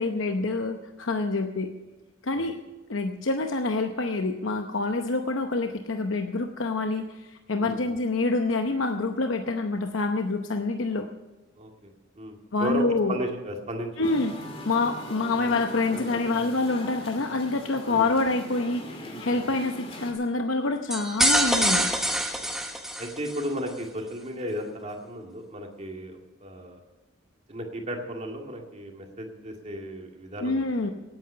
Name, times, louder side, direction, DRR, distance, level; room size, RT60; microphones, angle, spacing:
voice 1, 0.0-1.7 2.2-2.6 2.9-11.1 12.5-13.2 14.0-14.3 14.7-21.9 30.4-30.9, left 3 dB, 80° left, 5 dB, 0.8 m, -27 dB
voice 2, 7.6-8.0 11.6-14.1 17.8-18.1 22.4-22.5 23.0-26.8 27.5-30.9, equal, 35° right, 2 dB, 2.2 m, -35 dB
Musical instrument, 14.0-20.1, left 1 dB, 30° left, 2.3 m, -40 dB
sound 1, 20.9-23.4, right 1 dB, ahead, 1.2 m, -25 dB
17.0 x 9.2 x 5.6 m, 1.1 s
head